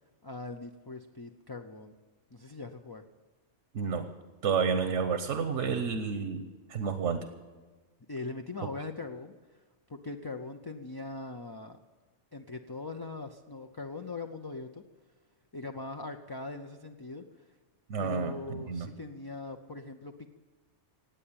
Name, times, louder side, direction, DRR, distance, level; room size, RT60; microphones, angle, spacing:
voice 1, 0.2-1.9 2.3-3.0 8.1-9.3 9.9-11.8 12.3-14.8 15.5-17.5 18.0-20.3, left 3 dB, 30° left, 5 dB, 0.5 m, -41 dB
voice 2, 3.7-4.1 4.4-7.3 17.9-18.9, right 6 dB, 85° right, 8 dB, 1.3 m, -30 dB
17.0 x 9.0 x 8.7 m, 1.3 s
omnidirectional pair, 1.2 m